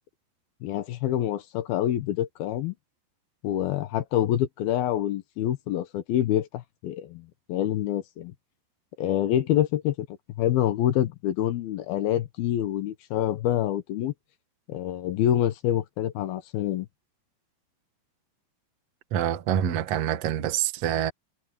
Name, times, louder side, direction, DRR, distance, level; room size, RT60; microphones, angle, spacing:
voice 1, 0.6-2.8 3.4-8.3 9.0-10.1 10.4-14.1 14.7-16.9, left 12 dB, 70° left, 2.5 m, -26 dB
voice 2, 19.1-21.1, right 10 dB, 70° right, 1.5 m, -26 dB
omnidirectional pair, 5.4 m